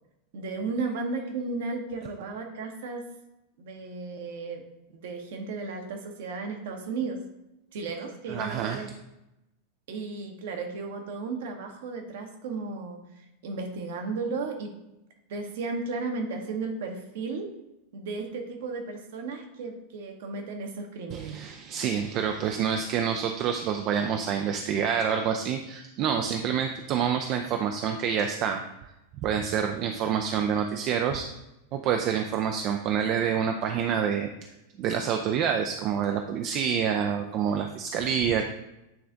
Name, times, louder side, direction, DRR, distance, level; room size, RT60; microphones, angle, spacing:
voice 1, 0.3-3.0 3.6-4.6 4.9-7.2 7.7-8.9 9.9-13.0 13.4-14.7 15.3-17.5 17.9-21.3, right 4 dB, 55° right, 3 dB, 0.9 m, -34 dB
voice 2, 8.3-8.9 21.1-28.9 29.2-31.3 31.7-34.3 34.8-38.4, right 7 dB, 40° right, 5 dB, 0.4 m, -27 dB
8.7 x 3.3 x 3.7 m, 0.91 s
figure-of-eight pair, 90°, 0 cm